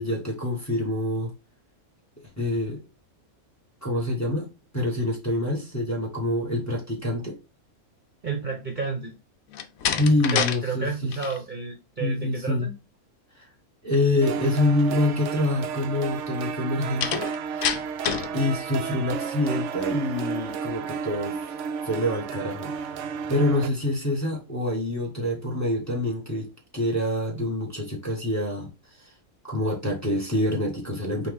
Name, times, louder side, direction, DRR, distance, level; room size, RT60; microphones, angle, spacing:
voice 1, 0.0-1.3 2.4-2.8 3.8-4.5 4.7-7.4 10.0-11.1 12.0-12.7 13.8-17.8 18.3-21.4 21.8-28.7 29.4-31.3, left 1 dB, 10° left, 1.2 m, -26 dB
voice 2, 8.2-9.1 10.3-12.7, right 4 dB, 40° right, 0.9 m, -31 dB
Slam, 9.5-10.6 10.9-11.4 17.0-18.3, left 8 dB, 75° left, 1.0 m, -27 dB
sound 1, 14.2-23.7, right 6 dB, 65° right, 0.8 m, -32 dB
5.5 x 2.5 x 3.4 m
omnidirectional pair, 1.5 m